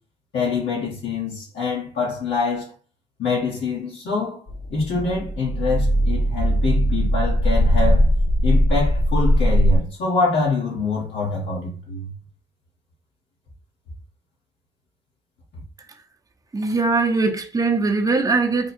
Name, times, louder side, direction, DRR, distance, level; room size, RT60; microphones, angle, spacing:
voice 1, 0.3-2.7 3.2-4.4 4.7-8.1 8.4-12.1, left 4 dB, 70° left, 1.6 m, -25 dB
sound 1, 4.5-9.8, equal, 45° left, 1.0 m, -19 dB
voice 2, 16.5-18.7, right 3 dB, 15° right, 0.7 m, -21 dB
3.6 x 2.3 x 4.3 m
cardioid pair, 90°, 20 cm